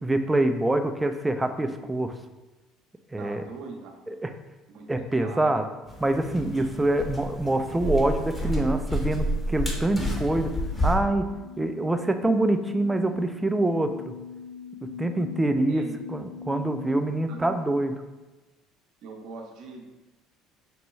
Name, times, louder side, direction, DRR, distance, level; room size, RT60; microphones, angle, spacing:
voice 1, 0.0-2.1 3.1-3.4 4.2-4.3 4.9-5.6 6.0-10.5 10.8-14.1 15.0-15.8 16.1-17.9, right 2 dB, 15° right, 7 dB, 0.4 m, -25 dB
voice 2, 3.2-3.9 4.7-4.9 5.2-5.7 6.7-6.8 15.7-15.9 17.3-17.6 19.0-19.8, right 4 dB, 65° right, 1 dB, 0.7 m, -41 dB
sound 1, 5.9-11.0, equal, 20° left, 1.0 m, -30 dB
sound 2, 8.8-16.9, left 8 dB, 70° left, 0.5 m, -43 dB
5.2 x 2.2 x 3.1 m, 1.1 s
hypercardioid pair, 70°, 0 cm